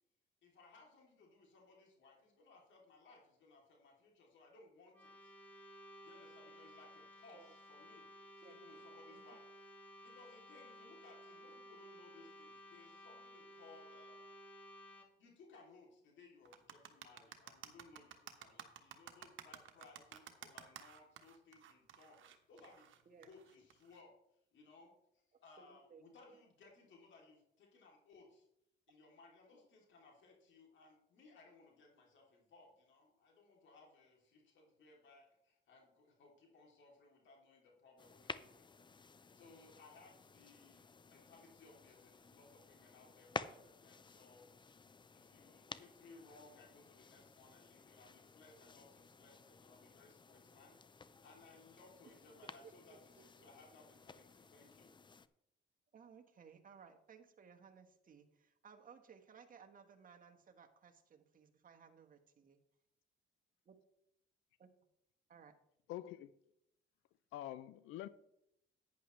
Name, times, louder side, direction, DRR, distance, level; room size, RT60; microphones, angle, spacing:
voice 1, 0.4-5.3 6.0-8.1 8.4-14.3 15.2-22.9 23.2-24.2 24.5-28.5 28.9-54.9, left 3 dB, 70° left, -1 dB, 3.0 m, -63 dB
sound 1, 4.9-15.1, equal, 10° left, 3.6 m, -57 dB
sound 2, 16.5-24.0, right 10 dB, 75° right, 1.2 m, -54 dB
voice 2, 25.6-26.4 52.6-53.5 55.9-62.6 63.7-63.8 64.6-64.7 65.3-65.5, right 6 dB, 45° right, 4 dB, 1.4 m, -60 dB
sound 3, 38.0-55.3, left 4 dB, 25° left, 0.5 m, -53 dB
voice 3, 65.9-66.3 67.3-68.1, left 13 dB, 90° left, 16 dB, 0.5 m, -46 dB
11.0 x 9.6 x 3.2 m, 0.79 s
cardioid pair, 90°, 20 cm